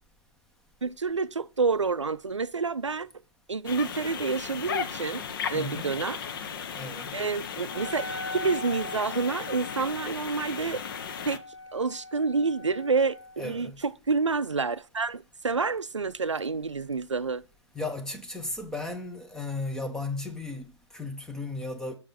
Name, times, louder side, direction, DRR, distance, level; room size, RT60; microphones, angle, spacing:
voice 1, 0.8-3.1 3.5-5.2 5.5-6.2 7.1-10.8 11.2-11.4 11.7-13.7 14.1-17.4, right 4 dB, 90° right, 0.4 m, -28 dB
sound 1, 3.7-11.4, left 7 dB, 50° left, 0.7 m, -36 dB
voice 2, 5.5-5.9 6.7-7.1 13.4-13.8 17.7-21.9, left 2 dB, 5° left, 0.7 m, -35 dB
Wind instrument woodwind instrument, 7.6-13.4, left 2 dB, 85° left, 1.4 m, -41 dB
6.4 x 5.5 x 4.2 m
figure-of-eight pair, 120°, 15 cm